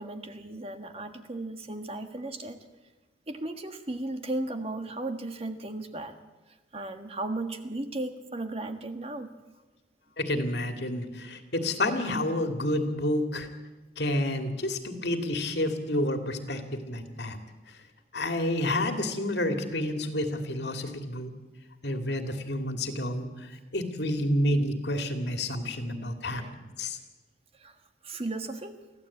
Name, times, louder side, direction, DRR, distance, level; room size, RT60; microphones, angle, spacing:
voice 1, 0.0-2.6 3.3-6.2 6.7-9.3 26.2-26.5 27.6-27.7 28.0-28.7, right 2 dB, 35° right, 7 dB, 1.6 m, -35 dB
voice 2, 10.2-13.5 14.0-17.4 18.1-21.3 21.8-26.4 26.8-27.0, left 1 dB, 65° left, 6 dB, 2.4 m, -29 dB
24.0 x 15.0 x 8.5 m, 1.2 s
head